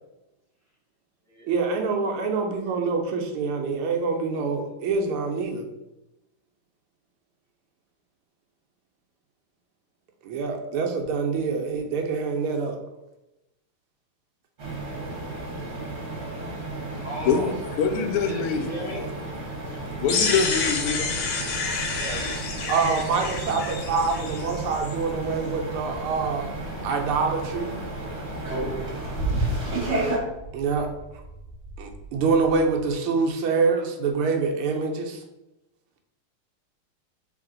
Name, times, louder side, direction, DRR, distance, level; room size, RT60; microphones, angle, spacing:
voice 1, 1.5-5.7 10.2-12.8 22.7-26.5 26.8-27.8 30.5-31.2 31.8-35.2, right 4 dB, 90° right, 1.6 m, -25 dB
voice 2, 4.3-4.7 17.0-17.5 18.2-19.1 21.9-23.2, equal, 10° left, 0.8 m, -37 dB
sound 1, 14.6-30.2, right 2 dB, 45° right, 1.0 m, -32 dB
voice 3, 16.9-19.1 19.7-21.2, left 6 dB, 85° left, 1.5 m, -26 dB
sound 2, 19.7-32.9, right 2 dB, 75° right, 0.3 m, -43 dB
sound 3, 20.1-24.9, left 4 dB, 65° left, 0.9 m, -29 dB
3.6 x 3.3 x 3.8 m
omnidirectional pair, 2.4 m